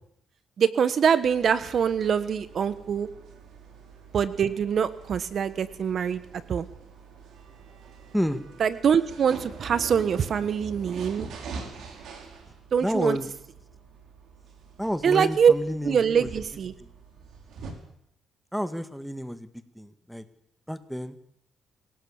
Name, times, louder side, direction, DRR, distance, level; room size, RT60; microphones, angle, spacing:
voice 1, 0.6-3.1 4.1-6.2 6.5-6.6 8.6-11.3 12.7-13.2 15.0-15.5 15.8-16.7, right 7 dB, 55° right, 14 dB, 1.3 m, -23 dB
sound 1, 1.2-17.7, right 5 dB, 75° right, 5.4 m, -44 dB
voice 2, 12.8-13.3 14.8-16.3 16.8-16.9 18.5-19.5 19.8-20.2 20.7-21.2, equal, ahead, 10 dB, 2.0 m, -30 dB
26.0 x 17.5 x 7.3 m, 0.74 s
cardioid pair, 90°, 0 cm